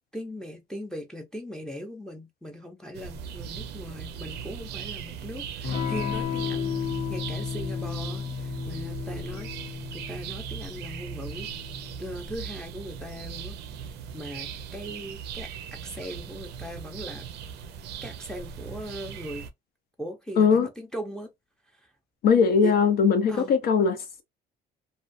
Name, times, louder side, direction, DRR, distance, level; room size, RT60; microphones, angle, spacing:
voice 1, 0.1-6.7 7.1-9.5 9.9-11.5 12.0-17.3 18.0-19.5 20.0-21.3 21.7-21.9 22.6-22.7 23.3-23.6, equal, 5° left, 0.5 m, -39 dB
sound 1, 2.9-19.5, right 7 dB, 80° right, 0.5 m, -39 dB
Electric guitar / Strum, 5.6-13.9, left 7 dB, 85° left, 1.0 m, -34 dB
voice 2, 20.4-20.7 22.2-24.2, left 6 dB, 65° left, 0.6 m, -20 dB
2.4 x 2.2 x 2.5 m
cardioid pair, 110°, 17 cm